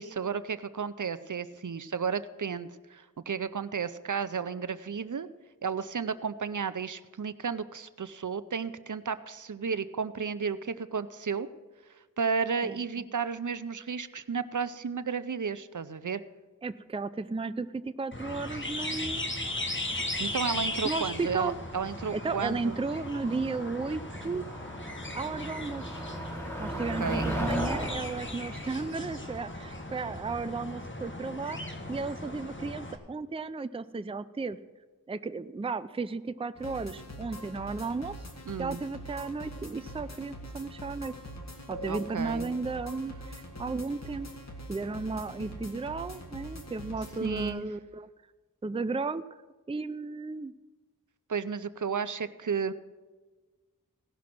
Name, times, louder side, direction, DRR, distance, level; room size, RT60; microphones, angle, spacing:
voice 1, 0.0-5.3 5.6-11.5 12.2-16.2 20.2-22.8 27.0-27.2 38.5-38.8 41.9-42.5 47.2-47.7 51.3-52.7, right 6 dB, 65° right, 14 dB, 0.6 m, -33 dB
voice 2, 16.6-19.5 20.8-21.6 22.1-24.5 25.1-26.0 26.6-31.6 31.9-34.6 35.1-38.2 38.6-41.1 41.7-44.3 44.7-48.1 48.6-49.2 49.7-50.5, right 4 dB, 15° right, 12 dB, 0.4 m, -34 dB
sound 1, 18.1-33.0, left 1 dB, 35° left, 1.4 m, -37 dB
Motor vehicle (road), 19.6-29.9, right 1 dB, 5° left, 2.5 m, -38 dB
sound 2, 36.6-47.5, equal, 50° left, 1.9 m, -43 dB
17.0 x 6.2 x 6.0 m, 1.3 s
wide cardioid pair, 40°, 33 cm